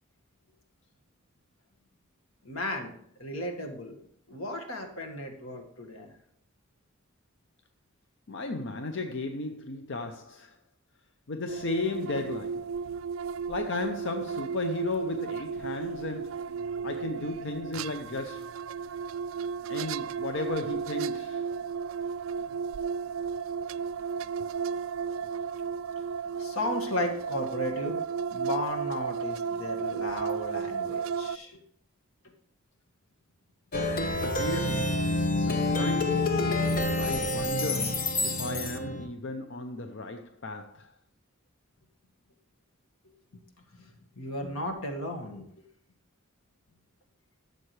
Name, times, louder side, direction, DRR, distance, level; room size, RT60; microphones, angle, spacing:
voice 1, 2.4-4.0 4.3-6.1 26.4-28.0 28.3-31.6 43.3-43.4 43.8-43.9 44.2-45.5, left 1 dB, 80° left, 1.7 m, -35 dB
voice 2, 8.3-10.5 11.3-12.7 13.5-16.5 16.8-18.5 19.7-21.5 34.2-35.1 35.3-36.5 37.0-40.9, left 2 dB, 60° left, 0.6 m, -35 dB
sound 1, 11.5-31.4, right 6 dB, 70° right, 0.3 m, -34 dB
Plucked string instrument, 33.7-39.1, left 2 dB, 45° left, 1.0 m, -27 dB
12.5 x 7.7 x 3.2 m
head